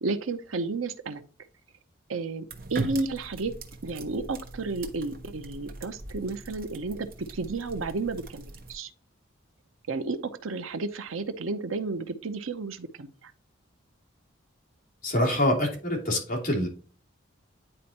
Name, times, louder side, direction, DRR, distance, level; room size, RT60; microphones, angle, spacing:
voice 1, 0.0-1.2 2.1-2.4 2.7-3.5 3.8-8.9 9.9-13.3, right 3 dB, 80° right, 10 dB, 0.7 m, -32 dB
sound 1, 2.5-8.7, right 2 dB, 45° right, 1.0 m, -40 dB
voice 2, 15.0-16.7, left 1 dB, 40° left, -1 dB, 2.8 m, -25 dB
10.0 x 4.4 x 2.9 m, 0.40 s
head